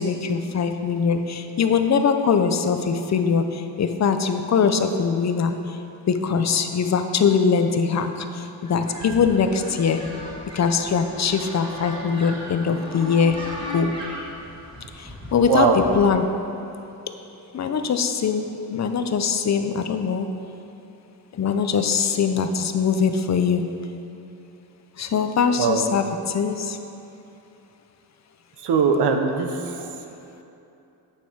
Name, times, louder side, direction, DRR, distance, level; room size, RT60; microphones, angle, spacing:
voice 1, 0.0-5.8 6.1-10.0 10.5-13.4 13.7-13.9 15.0-16.3 17.5-18.4 18.7-20.3 21.3-23.7 25.0-26.8, left 6 dB, 40° left, 7 dB, 0.6 m, -22 dB
sound 1, 8.7-16.0, equal, 10° right, 2.2 m, -37 dB
voice 2, 15.5-15.8 25.6-25.8 28.6-29.9, right 5 dB, 85° right, 5 dB, 0.9 m, -21 dB
8.5 x 7.1 x 4.7 m, 2.9 s
cardioid pair, 110°, 40 cm